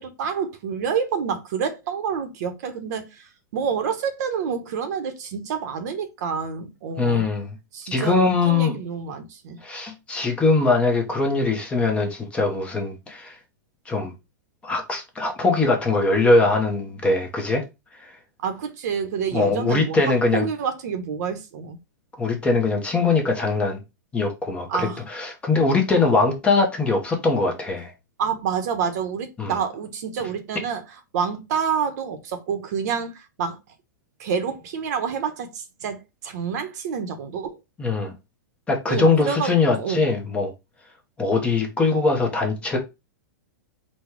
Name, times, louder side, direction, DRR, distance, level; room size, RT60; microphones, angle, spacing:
voice 1, 0.0-3.2 3.5-7.2 7.7-9.6 18.4-20.0 20.3-21.8 24.7-25.0 28.2-30.8 31.1-33.6 34.2-37.6 38.9-40.0, right 6 dB, 55° right, 0.9 m, -28 dB
voice 2, 7.0-7.5 7.9-8.7 9.6-13.4 13.9-14.1 14.6-17.6 18.0-18.1 19.3-20.5 22.2-23.8 24.1-27.9 29.4-29.6 37.8-38.1 38.7-40.5 41.2-42.8, left 3 dB, 10° left, 0.8 m, -21 dB
4.1 x 2.3 x 4.6 m
hypercardioid pair, 150°, 11 cm